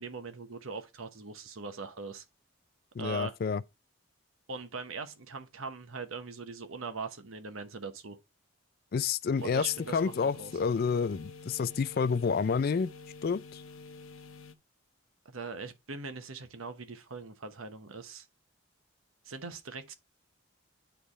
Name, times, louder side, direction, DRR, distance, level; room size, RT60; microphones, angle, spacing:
voice 1, 0.0-2.2 3.0-3.3 4.5-8.2 9.4-10.5 15.2-18.3 19.2-19.9, right 4 dB, 85° right, 1.0 m, -41 dB
voice 2, 3.0-3.6 8.9-12.9 13.2-13.6, left 5 dB, 45° left, 0.3 m, -29 dB
sound 1, 9.4-14.5, left 4 dB, 85° left, 0.8 m, -49 dB
8.6 x 3.5 x 4.1 m
head